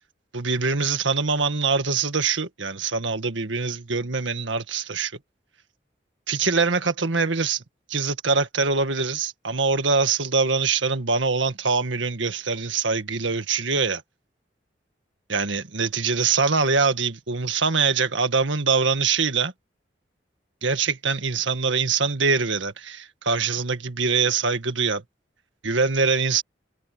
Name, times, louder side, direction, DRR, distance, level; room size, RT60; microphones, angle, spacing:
voice 1, 0.3-5.1 6.3-7.6 7.9-14.0 15.3-19.5 20.6-25.0 25.6-26.4, right 4 dB, 90° right, 1.8 m, -23 dB
head